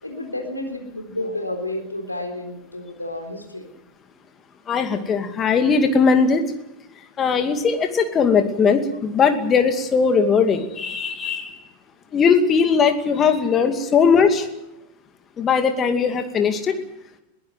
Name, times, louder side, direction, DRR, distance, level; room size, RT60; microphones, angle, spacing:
voice 1, 0.0-3.7, left 1 dB, 85° left, 4 dB, 3.9 m, -31 dB
voice 2, 4.7-6.4 7.2-11.6 12.1-14.5 15.4-16.7, left 5 dB, 25° left, 7 dB, 2.4 m, -19 dB
21.5 x 15.5 x 9.4 m, 0.89 s
figure-of-eight pair, 90°, 0 cm